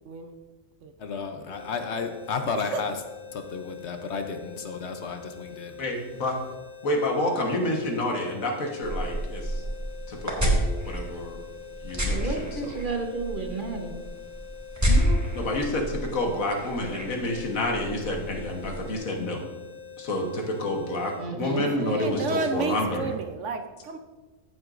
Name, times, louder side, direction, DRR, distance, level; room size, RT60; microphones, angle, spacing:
voice 1, 0.0-0.4 0.8-0.9 2.7-2.8 21.4-24.0, right 3 dB, 65° right, 7 dB, 1.0 m, -31 dB
voice 2, 1.0-2.9 3.3-5.7, left 5 dB, 60° left, 6 dB, 1.0 m, -32 dB
sound 1, 1.5-21.2, left 8 dB, 80° right, 4.0 m, -44 dB
voice 3, 5.8-6.4 6.8-9.6 10.1-11.4 11.8-12.6 15.3-19.4 20.0-23.2, left 1 dB, 80° left, 1 dB, 1.8 m, -29 dB
sound 2, 8.8-18.9, equal, 10° right, 1.6 m, -30 dB
voice 4, 12.1-13.9 14.9-15.2 21.2-21.7, right 3 dB, 40° right, 3 dB, 1.1 m, -32 dB
14.5 x 7.8 x 2.6 m, 1.2 s
omnidirectional pair, 1.4 m